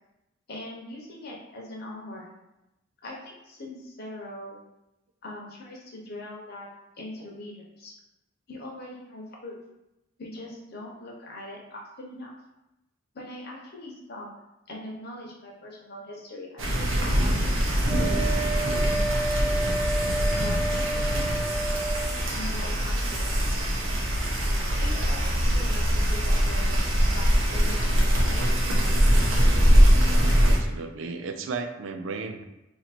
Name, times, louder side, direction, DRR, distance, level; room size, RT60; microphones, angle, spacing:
voice 1, 0.5-2.3 3.0-4.6 5.2-6.7 7.0-7.9 8.5-9.6 10.2-12.3 13.1-14.3 14.7-17.6 20.3-21.1 22.3-23.5 24.7-28.6, left 1 dB, 55° left, -2 dB, 0.9 m, -41 dB
sound 1, 16.6-30.6, equal, 90° right, 0.8 m, -22 dB
Wind instrument woodwind instrument, 17.9-22.1, right 2 dB, ahead, 1.1 m, -30 dB
voice 2, 30.4-32.4, right 4 dB, 70° right, 7 dB, 0.4 m, -34 dB
2.9 x 2.7 x 4.1 m, 0.93 s
head